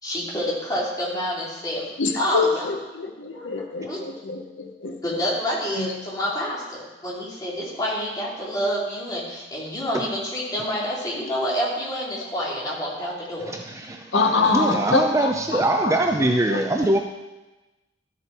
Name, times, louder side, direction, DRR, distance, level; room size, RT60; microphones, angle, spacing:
voice 1, 0.0-1.9 2.1-2.7 3.3-3.5 3.8-4.0 5.0-13.5, equal, 20° left, -5 dB, 2.5 m, -28 dB
voice 2, 2.0-5.0 5.8-5.9 14.1-16.9, left 3 dB, 70° left, 5 dB, 0.8 m, -25 dB
voice 3, 13.5-17.0, right 1 dB, 15° right, 3 dB, 0.5 m, -23 dB
12.5 x 6.8 x 4.3 m, 1.1 s
head